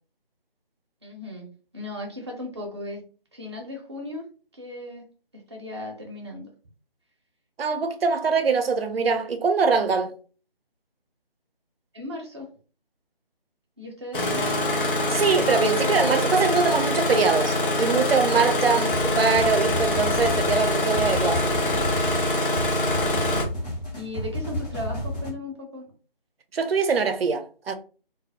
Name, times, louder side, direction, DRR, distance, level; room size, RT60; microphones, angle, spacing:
voice 1, 1.0-3.0 3.3-4.3 4.5-5.0 5.3-6.5 11.9-12.5 13.8-14.5 22.9-25.9, left 1 dB, 30° right, 0.6 m, -37 dB
voice 2, 7.6-10.1 15.1-21.6 26.5-27.7, right 5 dB, 85° right, 0.5 m, -23 dB
Engine starting, 14.1-23.5, left 1 dB, 60° left, 0.7 m, -24 dB
sound 1, 18.9-25.3, equal, 45° left, 1.0 m, -32 dB
2.3 x 2.0 x 2.7 m
figure-of-eight pair, 160°, 29 cm